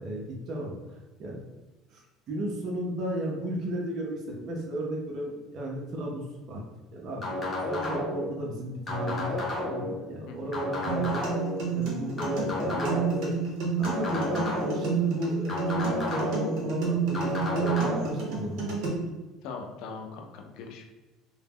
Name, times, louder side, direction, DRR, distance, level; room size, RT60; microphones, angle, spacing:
voice 1, 0.0-1.4 1.9-2.0 2.3-6.6 6.9-11.2 11.7-13.4 13.8-18.8, right 1 dB, 45° right, -2 dB, 0.5 m, -34 dB
sound 1, 7.2-8.3 8.9-9.9 10.5-11.6 12.2-13.2 13.8-14.9 15.5-16.5 17.1-18.0, left 2 dB, 20° left, 0.7 m, -31 dB
sound 2, 10.9-18.9, right 5 dB, 65° right, 0.9 m, -30 dB
voice 2, 19.4-20.9, left 4 dB, 70° left, 3 dB, 0.4 m, -41 dB
2.1 x 2.0 x 3.4 m, 1.1 s
cardioid pair, 130°, 0 cm